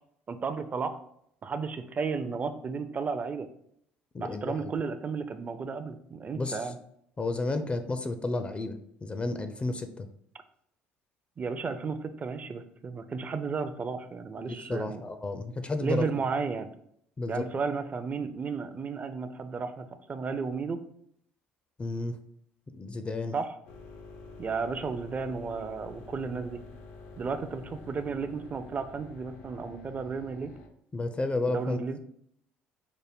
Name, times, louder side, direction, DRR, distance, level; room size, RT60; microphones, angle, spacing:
voice 1, 0.3-1.0 1.4-3.5 4.2-6.8 11.4-15.0 15.8-16.7 17.3-20.8 23.3-23.5 24.4-26.6 27.2-30.5 31.5-32.0, right 5 dB, 35° right, 10 dB, 0.4 m, -33 dB
voice 2, 4.1-4.7 6.3-6.7 7.2-10.1 14.4-16.1 17.2-17.5 21.8-22.2 22.7-23.3 30.9-31.8, left 2 dB, 25° left, 9 dB, 0.4 m, -32 dB
sound 1, 23.7-30.7, left 3 dB, 80° left, 0.6 m, -48 dB
5.1 x 2.1 x 3.5 m, 0.70 s
supercardioid pair, 75°, 5 cm